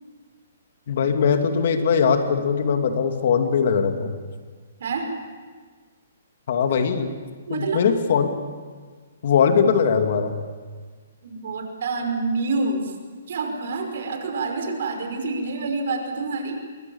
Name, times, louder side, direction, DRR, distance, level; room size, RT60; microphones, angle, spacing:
voice 1, 0.9-4.1 6.5-7.1 7.5-8.3 9.2-10.4, left 6 dB, 55° left, 6 dB, 2.6 m, -20 dB
voice 2, 7.5-7.9 11.2-12.9 13.3-16.6, right 3 dB, 65° right, 4 dB, 5.5 m, -27 dB
25.5 x 23.0 x 7.2 m, 1.5 s
hypercardioid pair, 150°, 0 cm